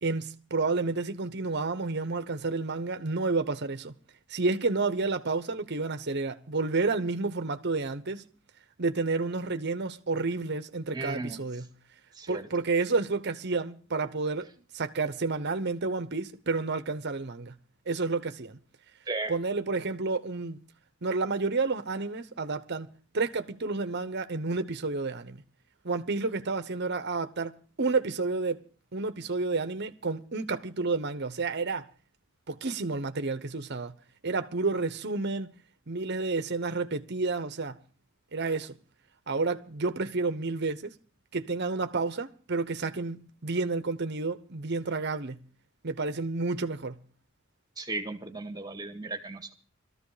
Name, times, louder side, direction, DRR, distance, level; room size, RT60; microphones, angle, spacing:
voice 1, 0.0-3.9 4.3-8.2 8.8-11.7 12.3-17.6 17.9-18.6 19.3-20.6 21.0-25.4 25.8-28.6 28.9-31.9 32.5-33.9 34.2-35.5 35.9-37.8 38.3-38.8 39.3-40.9 41.3-45.4 45.8-47.0, right 3 dB, 55° right, 1.0 m, -30 dB
voice 2, 10.9-11.4 12.2-12.5 19.1-19.3 47.8-49.5, right 2 dB, 20° right, 1.7 m, -35 dB
18.5 x 14.0 x 5.0 m
head